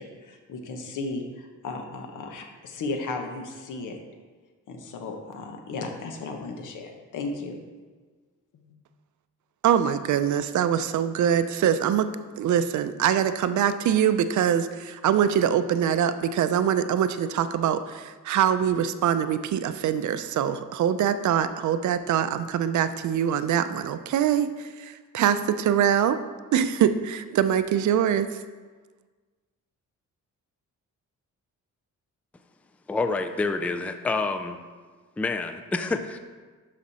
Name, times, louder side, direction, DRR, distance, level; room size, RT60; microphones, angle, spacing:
voice 1, 0.0-4.0 4.7-7.6 8.5-8.7, left 3 dB, 80° left, 4 dB, 1.3 m, -35 dB
voice 2, 9.6-12.1 12.4-26.2 26.5-28.3, right 9 dB, 70° right, 11 dB, 0.6 m, -23 dB
voice 3, 32.9-34.6 35.2-36.2, left 3 dB, 5° left, 8 dB, 0.3 m, -28 dB
11.5 x 5.1 x 4.2 m, 1.4 s
cardioid pair, 145°, 31 cm